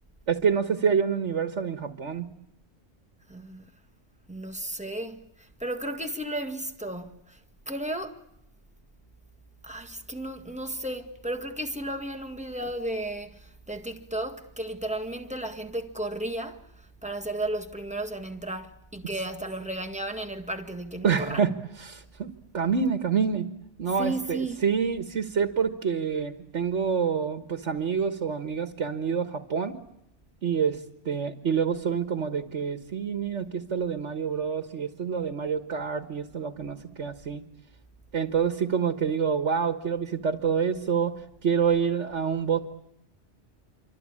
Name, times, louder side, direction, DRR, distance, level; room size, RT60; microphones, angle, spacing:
voice 1, 0.3-2.3 21.0-23.5 23.8-29.8 30.4-37.4 38.1-41.1 41.4-42.6, right 6 dB, 75° right, 1.8 m, -27 dB
voice 2, 3.3-3.7 4.3-7.4 7.6-8.2 9.6-21.5 24.0-24.6, right 1 dB, 5° right, 1.8 m, -34 dB
27.5 x 25.0 x 8.8 m
omnidirectional pair, 1.2 m